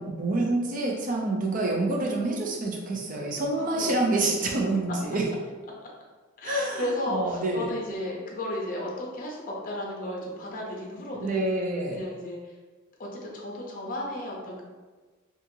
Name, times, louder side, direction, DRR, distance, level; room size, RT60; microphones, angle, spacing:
voice 1, 0.0-5.2 6.4-7.7 11.2-12.0, right 2 dB, 40° right, 0 dB, 0.5 m, -27 dB
voice 2, 3.5-3.9 4.2-4.3 6.4-11.5 11.9-12.6 13.0-14.6, left 1 dB, 40° left, -2 dB, 0.6 m, -34 dB
2.8 x 2.4 x 2.6 m, 1.3 s
head